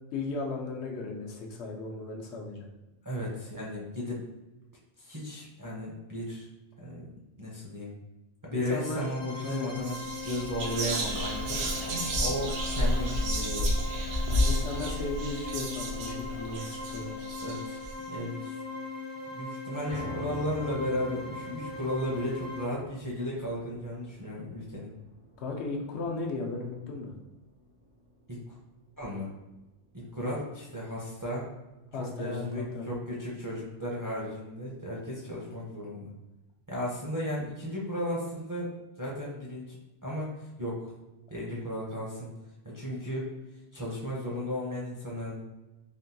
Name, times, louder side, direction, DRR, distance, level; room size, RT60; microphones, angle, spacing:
voice 1, 0.1-2.7 8.5-9.1 9.4-9.7 14.3-17.1 25.4-27.1 31.9-32.8, left 3 dB, 90° left, 0 dB, 0.9 m, -36 dB
voice 2, 3.0-4.2 5.0-6.4 6.8-7.1 7.4-7.9 8.4-10.0 10.2-13.7 17.4-17.8 18.1-18.6 19.3-24.9 28.3-28.5 29.0-29.3 29.9-31.5 32.0-36.1 36.7-38.7 39.0-39.8 40.0-40.3 40.6-40.9 41.3-42.3 42.6-43.3 43.7-45.3, left 1 dB, 25° right, -5 dB, 0.4 m, -35 dB
sound 1, 8.6-22.6, left 3 dB, 40° left, 0.4 m, -40 dB
Whispering, 9.4-9.6 9.8-17.9, equal, 75° right, 0.8 m, -31 dB
sound 2, 19.9-32.1 32.5-32.6 33.1-33.2, equal, 90° right, 1.7 m, -48 dB
3.5 x 2.2 x 2.6 m, 1.0 s
omnidirectional pair, 1.1 m